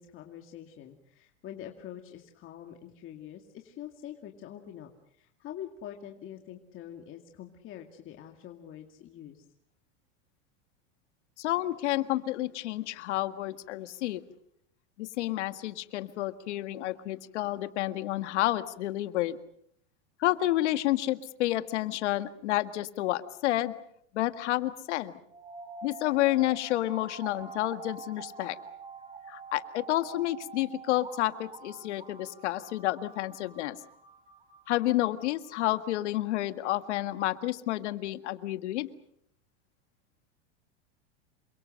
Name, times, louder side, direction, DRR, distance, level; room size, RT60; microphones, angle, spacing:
voice 1, 0.0-9.4, left 10 dB, 35° left, 3 dB, 2.3 m, -45 dB
voice 2, 11.4-14.2 15.0-19.4 20.2-23.7 24.1-25.1 25.8-28.6 29.3-33.8 34.7-38.9, left 15 dB, 80° left, 11 dB, 1.8 m, -30 dB
sound 1, 25.3-36.3, right 4 dB, 15° right, 4.9 m, -47 dB
28.5 x 24.0 x 6.6 m, 0.69 s
supercardioid pair, 130°, 34 cm